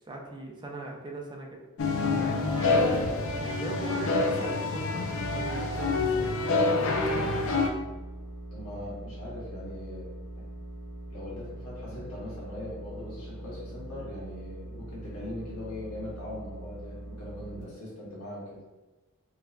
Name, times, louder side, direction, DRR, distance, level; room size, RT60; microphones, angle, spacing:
voice 1, 0.1-1.6 2.2-2.9 3.4-6.9 11.9-12.0, right 2 dB, 20° right, 0 dB, 0.4 m, -40 dB
sound 1, 1.8-7.7, left 3 dB, 65° left, 0.4 m, -27 dB
sound 2, 5.1-6.3 6.8-17.6, right 1 dB, 5° left, 0.9 m, -42 dB
voice 2, 8.5-10.1 10.3-10.4 11.1-18.6, left 1 dB, 85° left, -7 dB, 1.1 m, -41 dB
4.6 x 2.1 x 2.4 m, 1.1 s
head